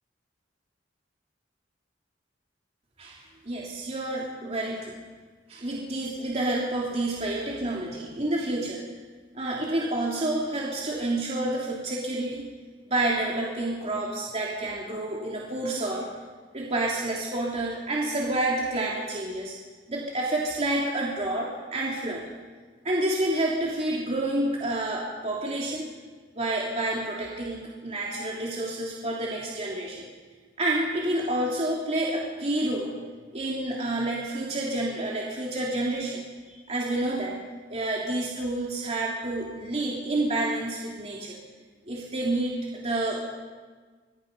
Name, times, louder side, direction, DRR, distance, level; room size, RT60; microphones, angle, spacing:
voice 1, 3.0-5.0 5.5-8.8 9.3-12.4 12.9-16.1 16.5-19.5 19.9-22.2 22.8-25.9 26.3-30.1 30.6-33.0 33.3-37.4 37.7-41.4 41.9-43.3, right 1 dB, 35° right, -3 dB, 3.2 m, -29 dB
26.0 x 22.5 x 5.4 m, 1.4 s
head